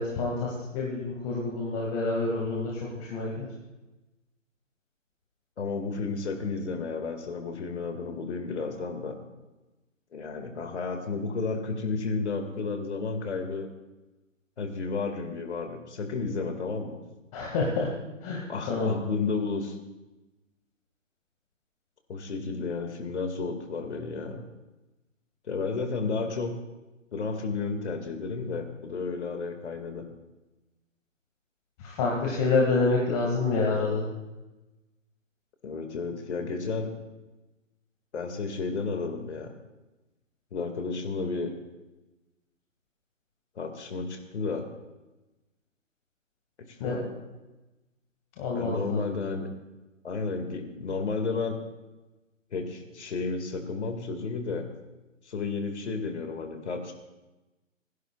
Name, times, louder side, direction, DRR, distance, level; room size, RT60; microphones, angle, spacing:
voice 1, 0.0-3.5 17.3-17.9 18.2-19.0 31.8-34.1 46.8-46.9 48.4-49.0, left 3 dB, 30° left, -3 dB, 2.2 m, -27 dB
voice 2, 5.6-9.2 10.1-13.7 14.6-17.0 18.5-19.8 22.1-24.4 25.5-26.5 27.1-30.1 35.6-36.9 38.1-39.5 40.5-41.5 43.6-44.7 46.6-47.1 48.5-49.5 50.0-51.5 52.5-54.7 55.2-56.9, left 4 dB, 60° left, 5 dB, 2.2 m, -32 dB
29.0 x 11.0 x 2.4 m, 1.1 s
figure-of-eight pair, 140°, 39 cm